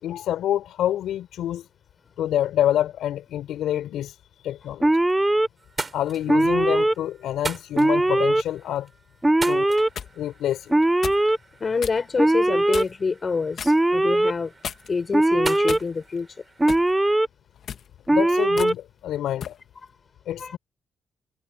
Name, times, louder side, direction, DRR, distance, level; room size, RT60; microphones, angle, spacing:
voice 1, 0.0-1.7 2.2-4.9 5.9-8.9 9.4-9.7 10.2-10.7 18.1-19.6 20.3-20.6, left 11 dB, 85° left, 5.5 m, -27 dB
sound 1, 4.7-5.3 5.6-17.2, right 4 dB, 30° right, 6.4 m, -40 dB
Alarm, 4.8-5.5 6.3-6.9 7.7-8.4 9.2-9.9 10.7-11.4 12.2-12.8 13.6-14.3 15.1-15.8 16.6-17.3 18.1-18.7, right 1 dB, 10° right, 0.6 m, -20 dB
sound 2, 9.6-10.1 11.0-11.3 11.8-12.0 12.7-13.1 13.6-13.8 14.6-15.0 15.7-16.2 16.7-16.9 17.6-17.9 18.6-18.7 19.4-19.6, left 8 dB, 60° left, 2.3 m, -35 dB
voice 2, 11.6-14.5 14.9-16.3 20.4-20.6, left 5 dB, 35° left, 5.9 m, -27 dB
cardioid pair, 100°, 0 cm